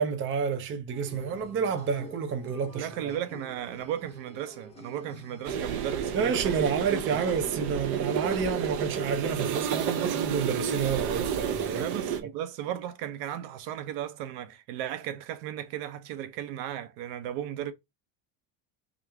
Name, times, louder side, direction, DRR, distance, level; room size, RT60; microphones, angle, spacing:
voice 1, 0.0-2.9 6.1-11.8, right 6 dB, 25° right, 0.6 m, -29 dB
sound 1, 0.9-6.7, left 2 dB, 15° left, 0.8 m, -48 dB
voice 2, 2.7-7.3 11.8-17.7, right 11 dB, 85° right, 0.9 m, -36 dB
sound 2, 5.4-12.2, right 8 dB, 50° right, 0.8 m, -31 dB
3.7 x 3.1 x 3.4 m
cardioid pair, 160°, 47 cm